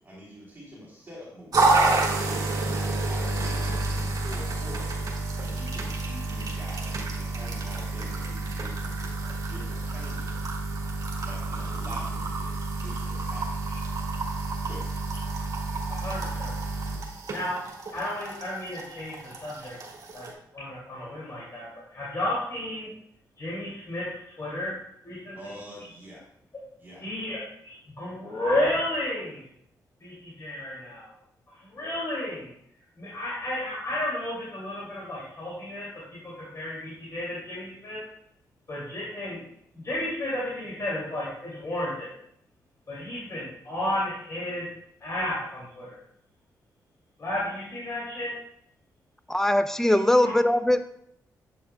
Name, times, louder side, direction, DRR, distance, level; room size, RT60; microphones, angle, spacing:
voice 1, 0.0-5.0 5.4-10.4 11.2-13.6 14.6-14.9 25.3-26.3 26.8-27.0, equal, 25° right, -6 dB, 2.7 m, -45 dB
sound 1, 1.5-20.3, right 3 dB, 55° right, 1.7 m, -29 dB
voice 2, 15.9-16.5 17.3-17.6 17.9-19.8 20.1-20.3 20.5-22.9 23.4-25.6 27.0-29.4 30.0-31.2 31.5-32.5 33.0-38.0 38.7-39.4 39.7-42.1 42.9-44.7 45.0-46.0 47.2-48.3 49.8-49.9 50.2-50.3, left 1 dB, 45° left, -7 dB, 2.4 m, -32 dB
voice 3, 49.3-50.8, left 1 dB, 5° left, 11 dB, 0.5 m, -21 dB
7.9 x 6.5 x 2.2 m, 0.71 s
cardioid pair, 70°, 7 cm